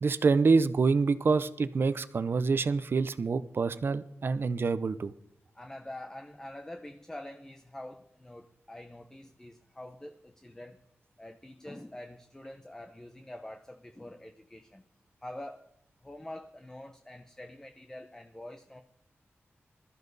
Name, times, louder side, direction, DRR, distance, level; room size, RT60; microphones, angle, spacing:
voice 1, 0.0-5.1, right 4 dB, 55° right, 14 dB, 0.7 m, -26 dB
voice 2, 5.5-10.8 11.2-14.8 15.2-15.7 16.0-18.8, left 1 dB, 10° left, 6 dB, 0.8 m, -45 dB
21.5 x 13.5 x 4.1 m, 0.75 s
wide cardioid pair, 135°, 4 cm